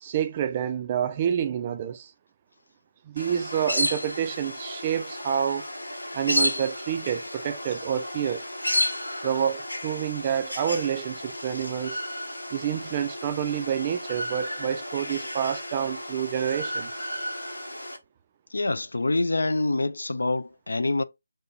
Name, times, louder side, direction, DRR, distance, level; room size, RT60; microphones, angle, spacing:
voice 1, 0.0-2.1 3.0-5.7 6.1-8.5 9.2-12.0 12.5-16.9, right 9 dB, 25° right, 0.3 m, -28 dB
sound 1, 3.2-18.0, left 1 dB, 85° left, 0.9 m, -32 dB
voice 2, 18.5-21.0, left 2 dB, 65° left, 0.3 m, -26 dB
3.3 x 2.7 x 2.8 m
figure-of-eight pair, 155°, 0 cm